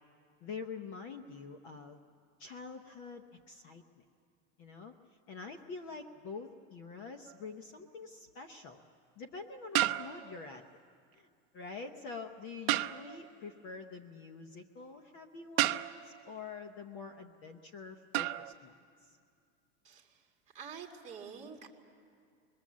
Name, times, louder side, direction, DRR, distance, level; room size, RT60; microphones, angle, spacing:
voice 1, 0.4-2.0 2.4-4.0 4.6-4.9 5.3-8.8 9.2-10.6 11.1-11.3 11.5-18.7 19.1-19.2, left 4 dB, 30° left, 7 dB, 0.8 m, -46 dB
sound 1, 7.3-7.5 9.7-10.5 12.7-13.3 15.6-16.2 18.1-18.5, right 16 dB, 50° right, 0.6 m, -32 dB
voice 2, 19.8-20.3 20.5-21.7, right 6 dB, 20° right, 2 dB, 2.1 m, -47 dB
25.0 x 21.5 x 7.4 m, 2.3 s
supercardioid pair, 165°, 38 cm